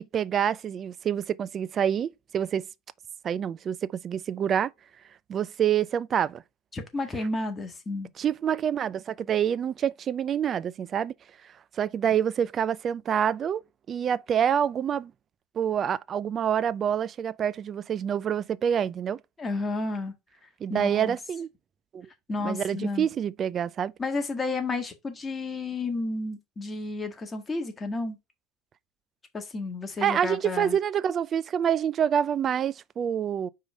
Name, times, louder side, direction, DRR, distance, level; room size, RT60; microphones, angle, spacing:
voice 1, 0.0-2.7 3.2-3.8 4.0-4.7 5.3-6.4 8.2-11.1 11.8-13.6 13.9-15.1 15.6-19.2 20.6-21.5 21.9-22.1 22.4-23.9 30.0-33.5, right 8 dB, 40° right, 0.4 m, -27 dB
voice 2, 6.7-8.1 19.4-20.1 20.7-21.2 22.3-23.1 24.0-28.2 29.3-30.8, left 3 dB, 20° left, 1.8 m, -31 dB
4.8 x 3.7 x 5.3 m
hypercardioid pair, 85°, 0 cm